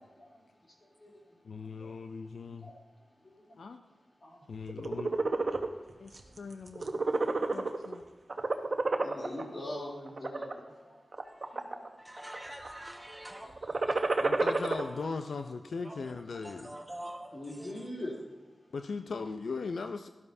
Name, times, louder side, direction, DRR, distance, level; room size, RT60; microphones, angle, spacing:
voice 1, 0.1-6.4 7.0-7.6 8.9-11.0 11.4-12.4 13.1-14.4 15.3-15.5 16.6-16.7 17.3-18.6, left 1 dB, 50° left, -3 dB, 3.0 m, -46 dB
voice 2, 1.4-2.7 3.6-3.8 4.5-5.2 6.0-7.1 7.5-8.0 14.2-16.8 18.7-20.1, left 4 dB, 80° left, 7 dB, 0.4 m, -39 dB
sound 1, 4.7-5.7 6.1-6.4 6.7-7.9 8.3-9.4 10.1-10.5 11.1-11.9 12.2-12.7 13.5-14.8, right 3 dB, 55° right, 0.9 m, -29 dB
voice 3, 12.0-13.5 14.7-14.8 15.8-16.1 16.4-17.7, right 1 dB, 15° right, 3 dB, 1.4 m, -45 dB
12.0 x 12.0 x 2.7 m, 1.2 s
cardioid pair, 55°, 0 cm